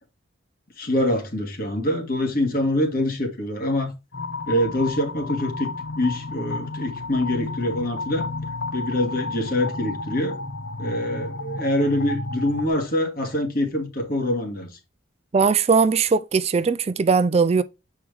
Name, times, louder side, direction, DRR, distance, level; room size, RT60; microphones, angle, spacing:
voice 1, 0.8-3.9 4.5-8.3 8.7-10.4 10.8-14.8, left 1 dB, 50° left, 2.0 m, -25 dB
sound 1, 4.1-12.7, left 3 dB, 75° left, 1.0 m, -32 dB
voice 2, 15.3-17.6, right 5 dB, 35° right, 0.4 m, -19 dB
7.9 x 4.7 x 3.4 m
head